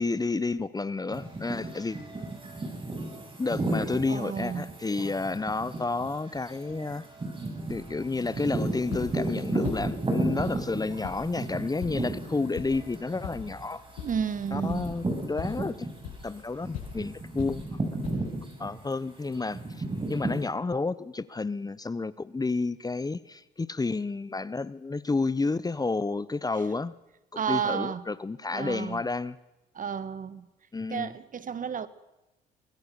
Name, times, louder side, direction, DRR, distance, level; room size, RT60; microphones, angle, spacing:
voice 1, 0.0-2.0 3.4-7.0 7.7-13.8 14.5-15.9 16.2-17.7 18.6-19.8 20.1-26.9 27.5-29.4 30.7-31.1, left 3 dB, 20° left, 0.9 m, -30 dB
sound 1, 1.1-16.3 16.6-20.4, right 2 dB, 25° right, 7.6 m, -34 dB
voice 2, 4.1-4.7 14.0-14.9 27.3-28.0 28.5-29.0 29.7-30.5 30.9-31.9, right 7 dB, 45° right, 1.4 m, -31 dB
sound 2, 7.7-18.5, left 7 dB, 85° left, 7.2 m, -43 dB
23.5 x 20.0 x 6.9 m
supercardioid pair, 60°, 19 cm